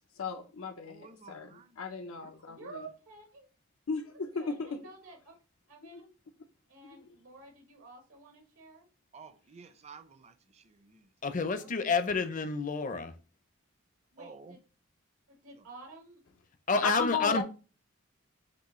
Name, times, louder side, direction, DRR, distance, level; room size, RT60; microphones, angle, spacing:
voice 1, 0.2-2.9 3.9-4.8 5.9-6.0 6.8-7.0 16.8-17.4, left 5 dB, 85° left, 0.6 m, -36 dB
voice 2, 0.8-1.8 2.1-2.7 9.1-11.1 14.2-14.6 15.6-15.7, right 4 dB, 30° right, 0.5 m, -53 dB
voice 3, 2.5-3.5 4.3-5.3 5.7-6.1 6.7-8.8 11.6-11.7 14.1-14.6 15.3-16.2 16.7-17.3, right 3 dB, 80° right, 1.2 m, -51 dB
voice 4, 11.2-13.1 16.7-17.4, left 4 dB, 40° left, 0.5 m, -29 dB
6.1 x 2.7 x 3.1 m
head